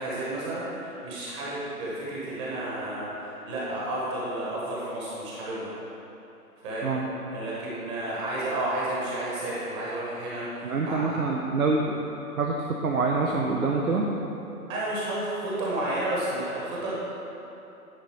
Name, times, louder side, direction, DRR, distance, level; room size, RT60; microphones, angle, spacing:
voice 1, 0.0-5.7 6.6-6.9 7.3-11.2 14.7-16.9, right 1 dB, 20° right, -6 dB, 1.3 m, -31 dB
voice 2, 10.6-12.0 12.4-14.1, right 3 dB, 65° right, -1 dB, 0.9 m, -26 dB
9.9 x 3.9 x 5.7 m, 3.0 s
figure-of-eight pair, 140°, 46 cm